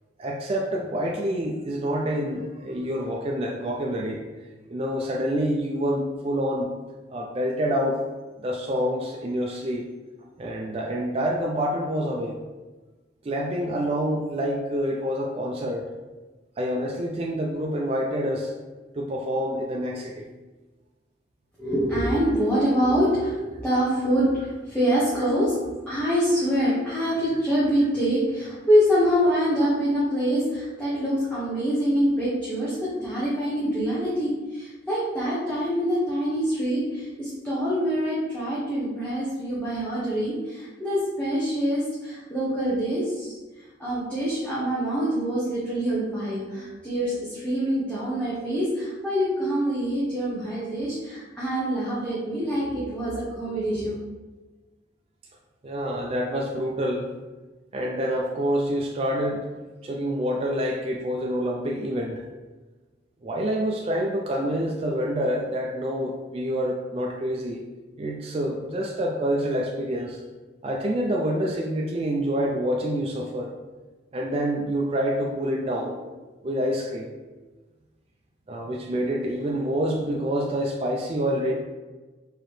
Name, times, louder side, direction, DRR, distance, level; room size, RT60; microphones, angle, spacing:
voice 1, 0.2-4.2 4.7-6.7 7.1-8.0 8.4-9.8 10.4-12.4 13.2-15.9 16.6-18.5 18.9-20.3 55.6-57.1 57.7-59.5 59.8-62.2 63.2-67.6 68.0-70.2 70.6-73.5 74.1-76.0 76.4-77.1 78.5-81.5, equal, 30° right, -1 dB, 0.4 m, -27 dB
voice 2, 21.6-25.6 25.9-43.3 43.8-54.0, equal, 5° left, -10 dB, 0.8 m, -25 dB
4.5 x 2.9 x 3.2 m, 1.2 s
head